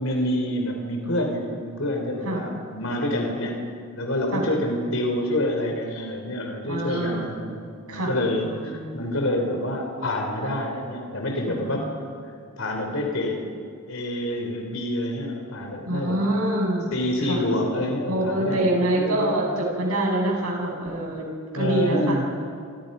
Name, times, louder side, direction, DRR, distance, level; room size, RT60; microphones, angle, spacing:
voice 1, 0.0-3.7 3.9-11.9 12.6-13.4 13.9-16.2 16.9-18.7 18.9-19.4 21.5-22.3, left 1 dB, 65° left, 2 dB, 3.7 m, -27 dB
voice 2, 6.6-7.4 7.9-8.1 8.4-8.8 11.5-11.9 15.8-16.9 17.3-17.4 18.1-21.3 21.5-22.3, right 1 dB, 85° right, -1 dB, 7.4 m, -25 dB
28.0 x 26.5 x 5.6 m, 2.3 s
head